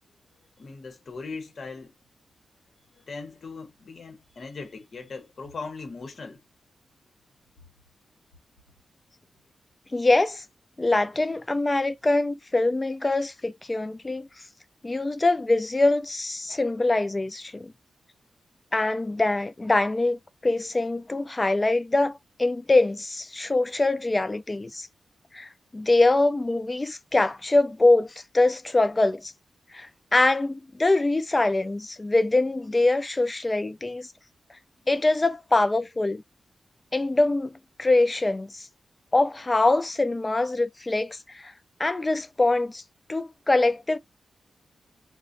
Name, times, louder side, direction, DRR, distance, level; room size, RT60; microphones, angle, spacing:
voice 1, 0.6-1.9 2.9-6.4, left 4 dB, 50° left, 1.0 m, -39 dB
voice 2, 9.9-10.4 10.8-14.3 14.8-17.7 18.7-24.9 25.3-29.3 29.7-34.1 34.9-36.2 36.9-37.5 37.8-38.7 39.1-41.5 41.8-42.8 43.1-44.0, left 2 dB, 20° left, 0.3 m, -24 dB
2.4 x 2.1 x 2.6 m
wide cardioid pair, 120°, 0 cm